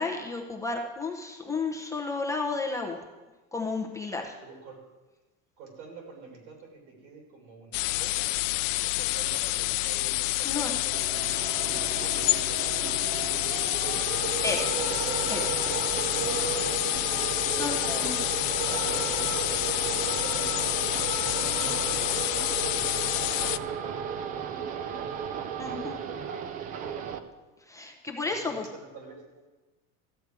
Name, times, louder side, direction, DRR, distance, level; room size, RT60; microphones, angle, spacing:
voice 1, 0.0-3.0 3.5-4.4 8.7-8.9 10.4-10.7 14.4-14.8 15.3-15.5 17.6-18.2 25.6-26.0 27.7-28.6, left 3 dB, 10° left, 1 dB, 0.7 m, -32 dB
voice 2, 4.4-4.8 5.6-8.3 8.8-14.4 17.0-25.3 25.9-27.4 28.2-29.5, right 4 dB, 80° right, 0 dB, 4.0 m, -49 dB
sound 1, 7.7-23.6, left 19 dB, 80° left, 0.5 m, -28 dB
sound 2, 10.9-27.2, right 7 dB, 25° right, 0.3 m, -34 dB
13.5 x 8.3 x 4.7 m, 1.2 s
cardioid pair, 160°, 38 cm